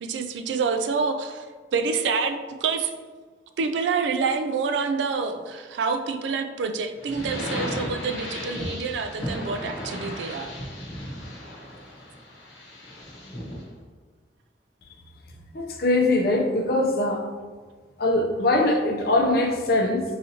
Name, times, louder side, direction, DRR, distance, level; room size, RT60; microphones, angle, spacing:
voice 1, 0.0-1.5 1.7-2.9 3.6-10.5, right 5 dB, 85° right, 7 dB, 0.3 m, -27 dB
sound 1, 7.0-13.7, equal, 75° left, 0.9 m, -35 dB
voice 2, 15.5-17.2 18.0-20.0, left 2 dB, 60° left, 2 dB, 0.5 m, -22 dB
4.8 x 2.7 x 2.7 m, 1.4 s
head